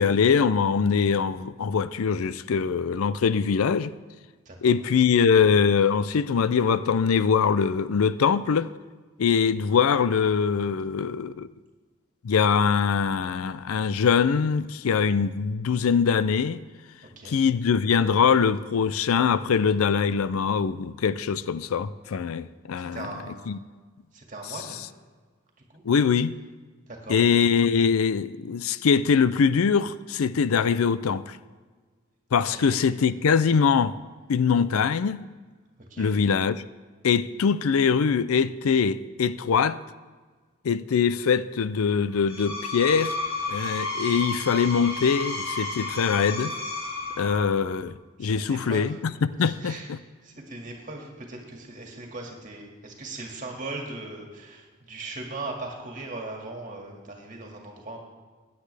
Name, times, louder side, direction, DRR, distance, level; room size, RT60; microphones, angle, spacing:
voice 1, 0.0-3.9 4.6-8.7 9.2-11.5 12.2-16.6 17.3-23.1 23.5-23.6 25.8-26.3 27.1-31.4 32.3-33.9 34.3-35.2 36.0-36.6 37.0-39.8 40.6-43.1 43.5-46.5 47.2-49.1 49.4-50.0, left 6 dB, 90° left, 0.4 m, -23 dB
voice 2, 17.0-17.4 22.8-23.5 24.1-24.8 25.7-25.8 26.9-27.2 32.5-32.9 35.9-36.1 48.2-49.0 49.4-49.9 50.2-58.0, right 2 dB, 35° right, 2.0 m, -39 dB
Screech, 42.1-47.6, left 2 dB, 20° left, 3.6 m, -32 dB
16.0 x 9.6 x 3.4 m
head